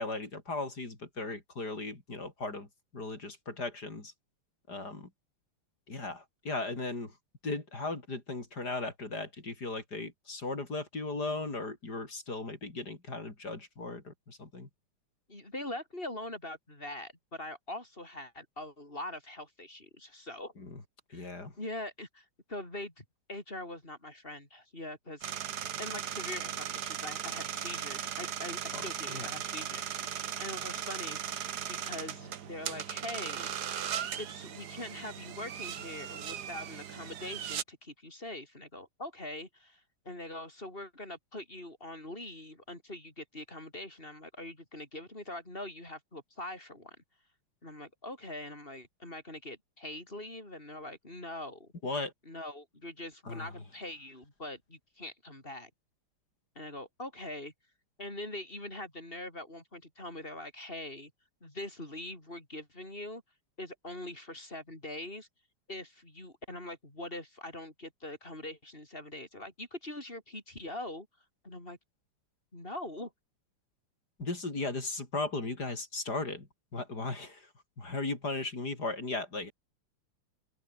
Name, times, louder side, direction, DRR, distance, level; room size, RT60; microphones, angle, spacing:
voice 1, 0.0-4.1 4.7-5.1 5.9-7.2 7.4-14.7 20.6-20.8 21.1-21.5 28.7-29.3 51.8-52.1 53.3-53.5 74.2-76.5 76.7-77.5 77.8-79.5, left 3 dB, 45° left, 5.3 m, -37 dB
voice 2, 15.3-20.5 21.1-25.3 25.8-29.9 30.4-31.4 31.7-33.5 34.2-47.0 47.6-51.7 52.3-55.7 56.6-57.5 58.0-61.1 61.4-63.2 63.6-65.3 65.7-71.1 71.4-71.8 72.5-73.1, left 1 dB, 25° left, 6.3 m, -43 dB
sound 1, 25.2-37.6, right 9 dB, 55° right, 1.6 m, -38 dB
open air
omnidirectional pair, 2.4 m